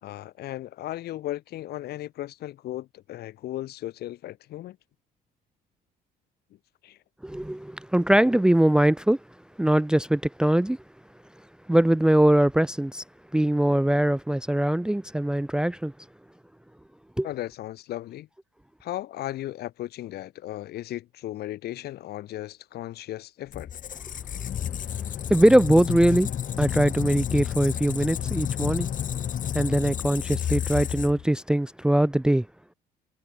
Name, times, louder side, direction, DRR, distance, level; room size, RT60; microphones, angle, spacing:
voice 1, 0.0-4.8 6.8-7.0 17.2-18.3 18.8-23.7 24.5-24.8, left 14 dB, 70° left, 3.6 m, -36 dB
voice 2, 7.2-9.2 9.6-10.8 11.7-13.0 13.3-15.9 17.2-17.3 25.3-26.3 26.6-28.9 29.5-32.5, right 1 dB, 5° right, 0.5 m, -21 dB
Squeak, 23.5-31.4, left 9 dB, 50° left, 3.5 m, -31 dB
cardioid pair, 110°, 17 cm